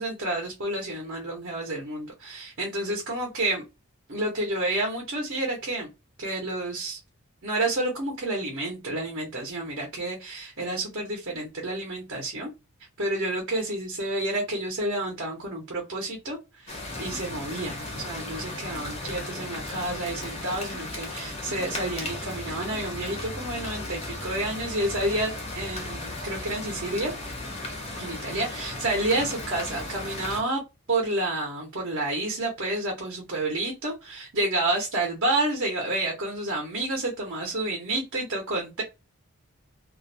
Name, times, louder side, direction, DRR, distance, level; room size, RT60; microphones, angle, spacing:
voice 1, 0.0-3.6 4.1-5.9 6.2-7.0 7.4-12.5 13.0-27.1 28.0-30.6 30.9-38.8, right 2 dB, 55° right, 0.7 m, -30 dB
sound 1, 16.7-30.4, left 2 dB, 30° left, 0.5 m, -36 dB
2.3 x 2.1 x 2.5 m
head